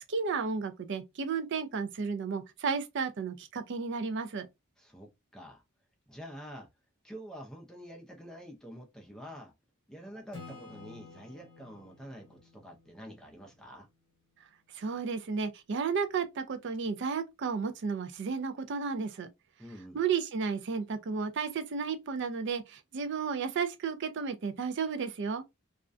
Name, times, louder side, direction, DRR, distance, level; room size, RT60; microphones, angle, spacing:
voice 1, 0.1-4.5 14.8-19.3 19.9-25.4, right 5 dB, 55° right, 0.4 m, -33 dB
voice 2, 4.8-5.6 6.1-6.7 7.0-9.5 9.9-13.9 19.6-20.0, equal, 5° left, 0.4 m, -47 dB
Acoustic guitar / Strum, 10.3-13.9, left 3 dB, 25° left, 0.9 m, -52 dB
2.4 x 2.1 x 2.4 m
head